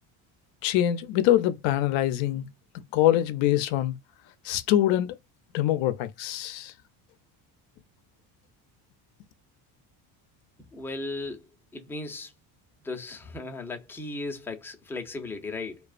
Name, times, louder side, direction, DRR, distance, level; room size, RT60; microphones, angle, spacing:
voice 1, 0.6-2.5 2.9-3.9 4.4-5.1 5.5-6.7, left 13 dB, 70° left, 0.6 m, -24 dB
voice 2, 10.7-11.4 11.7-12.3 12.8-15.8, left 2 dB, 5° left, 0.5 m, -36 dB
2.3 x 2.3 x 2.4 m
supercardioid pair, 80°, 48 cm